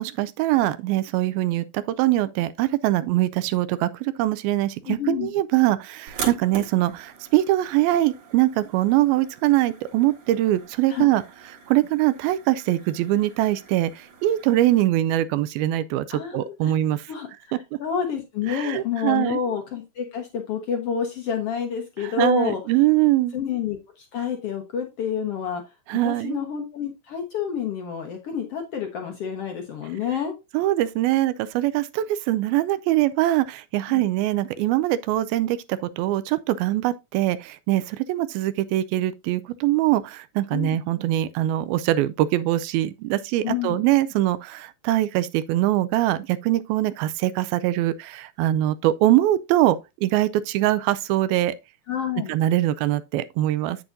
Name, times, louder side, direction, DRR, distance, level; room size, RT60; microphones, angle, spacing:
voice 1, 0.0-11.2 11.7-17.0 18.5-19.4 22.0-23.4 25.9-26.3 30.5-51.6 52.3-53.8, right 15 dB, 85° right, 2.4 m, -23 dB
voice 2, 4.8-5.3 10.9-11.1 16.1-16.7 17.1-22.6 23.3-25.6 26.0-30.3 33.9-34.0 40.5-40.8 43.4-43.8 51.9-52.3, left 7 dB, 80° left, 1.3 m, -28 dB
sound 1, 6.1-14.8, right 6 dB, 60° right, 3.0 m, -41 dB
8.5 x 7.8 x 2.5 m
omnidirectional pair, 4.3 m